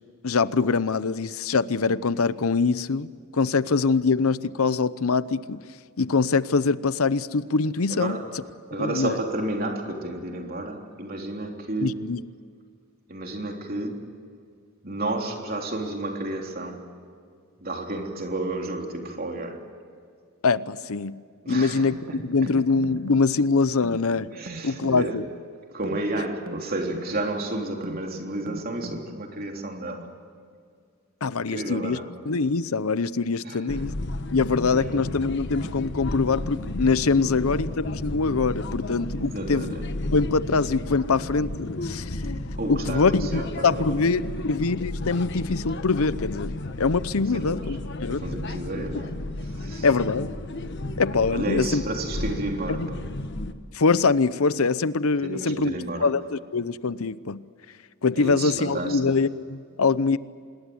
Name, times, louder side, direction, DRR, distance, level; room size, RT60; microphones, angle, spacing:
voice 1, 0.2-5.6 6.0-8.2 8.8-9.2 11.8-12.2 20.4-21.2 21.5-24.3 24.6-25.2 31.2-32.0 32.3-33.9 34.3-39.7 40.0-42.3 42.7-48.2 49.8-50.3 51.0-51.8 52.7-52.9 53.7-55.7 56.0-57.4 58.0-60.2, left 4 dB, 75° left, 0.8 m, -24 dB
voice 2, 7.9-8.4 8.7-12.0 13.1-14.3 14.8-17.0 17.6-19.8 21.4-22.5 24.3-25.2 25.7-30.1 31.4-32.2 33.4-33.9 34.8-34.9 39.1-39.9 42.6-44.5 47.3-47.8 48.1-49.9 51.3-53.0 55.2-56.1 58.1-59.1, right 2 dB, 40° right, 3.5 m, -32 dB
sound 1, 21.6-29.6, right 3 dB, 65° right, 1.5 m, -42 dB
sound 2, 33.7-53.5, left 1 dB, 50° left, 1.3 m, -33 dB
26.5 x 21.0 x 7.9 m
head